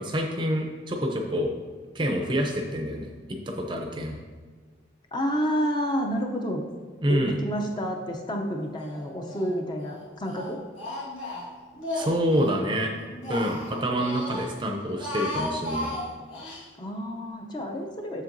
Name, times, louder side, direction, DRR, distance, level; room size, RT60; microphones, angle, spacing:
voice 1, 0.0-1.5 1.9-4.2 7.0-7.4 11.9-12.9 13.3-15.9, equal, 25° right, 2 dB, 0.5 m, -27 dB
voice 2, 5.1-6.6 7.1-10.6 16.8-18.2, equal, 25° left, 2 dB, 0.5 m, -29 dB
Speech, 8.8-9.5 9.8-12.6 13.0-14.5 14.8-16.6, left 1 dB, 85° left, 1.7 m, -35 dB
7.4 x 6.6 x 2.6 m, 1.5 s
head